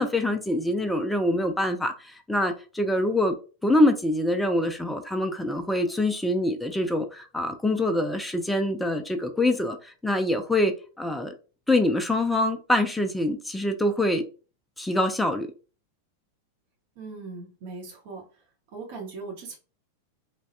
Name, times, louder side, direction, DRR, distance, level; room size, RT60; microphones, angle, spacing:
voice 1, 0.0-3.3 3.6-11.3 11.7-14.2 14.8-15.5, left 1 dB, 5° left, 0.4 m, -25 dB
voice 2, 17.0-18.4 18.7-19.6, right 4 dB, 50° right, 0.8 m, -39 dB
3.1 x 2.2 x 2.6 m
figure-of-eight pair, 90°, 0 cm